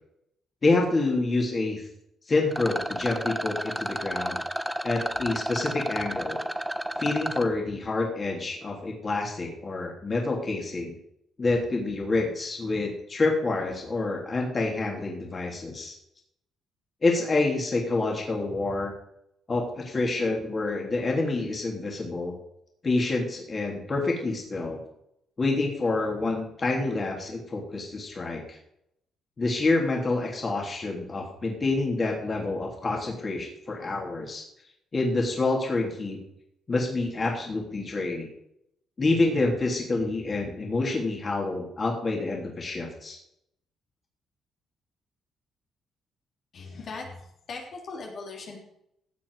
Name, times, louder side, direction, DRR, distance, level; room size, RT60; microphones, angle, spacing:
voice 1, 0.6-1.9 2.3-4.4 4.8-6.4 7.0-10.9 11.4-16.0 17.0-18.9 19.5-22.3 22.8-24.8 25.4-28.6 29.4-34.4 34.9-36.2 36.7-38.3 39.0-43.2, left 3 dB, 35° left, -1 dB, 3.1 m, -27 dB
Rattle, 2.5-7.5, right 1 dB, 5° right, 0.9 m, -31 dB
voice 2, 46.5-48.6, left 3 dB, 60° left, -1 dB, 3.2 m, -39 dB
15.5 x 7.4 x 4.9 m, 0.77 s
cardioid pair, 90°, 0 cm